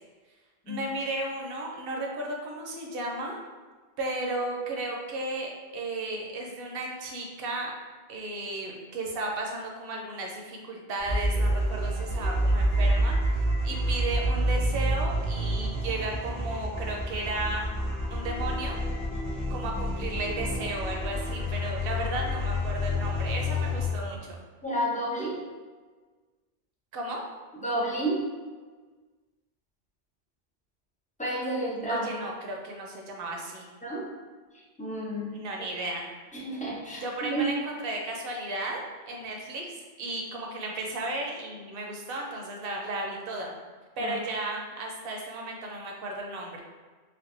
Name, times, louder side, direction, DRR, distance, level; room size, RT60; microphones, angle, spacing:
voice 1, 0.7-3.4 4.0-7.7 8.1-13.2 13.6-17.8 18.1-18.8 19.5-24.4 26.9-27.2 31.9-33.7 35.3-36.1 37.0-43.5 44.0-46.6, right 2 dB, 60° right, 0 dB, 0.8 m, -34 dB
sound 1, 11.0-23.9, equal, 60° left, 1.2 m, -28 dB
voice 2, 24.6-25.4 27.6-28.2 31.2-32.1 33.8-34.1 34.8-35.4 36.3-37.5 44.0-44.1, right 1 dB, 10° left, -5 dB, 0.4 m, -30 dB
4.5 x 2.2 x 2.5 m, 1.4 s
omnidirectional pair, 1.1 m